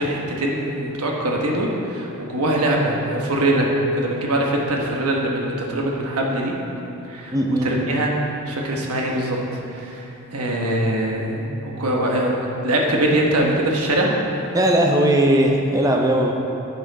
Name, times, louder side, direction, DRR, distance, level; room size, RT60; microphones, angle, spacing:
voice 1, 0.0-3.7 3.9-6.5 7.1-7.3 7.6-8.1 8.5-9.4 9.7-10.1 10.3-14.1, right 1 dB, 85° right, -1 dB, 1.2 m, -22 dB
voice 2, 7.3-7.7 14.5-16.3, right 1 dB, 15° right, 1 dB, 0.5 m, -18 dB
9.8 x 5.7 x 4.1 m, 2.9 s
head